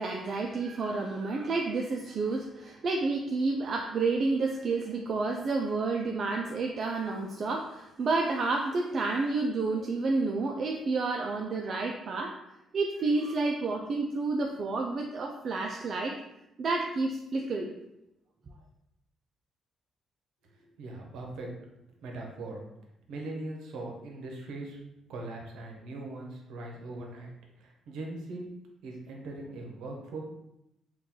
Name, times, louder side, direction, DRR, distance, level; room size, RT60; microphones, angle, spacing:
voice 1, 0.0-12.3 12.7-16.2 16.6-17.8, right 3 dB, 50° right, 1 dB, 0.3 m, -30 dB
voice 2, 20.6-21.5 22.0-22.6 23.1-24.8 25.1-27.3 27.6-28.4 28.8-30.2, right 2 dB, 85° right, 0 dB, 0.7 m, -40 dB
2.9 x 2.3 x 3.7 m, 0.87 s
cardioid pair, 90°, 0 cm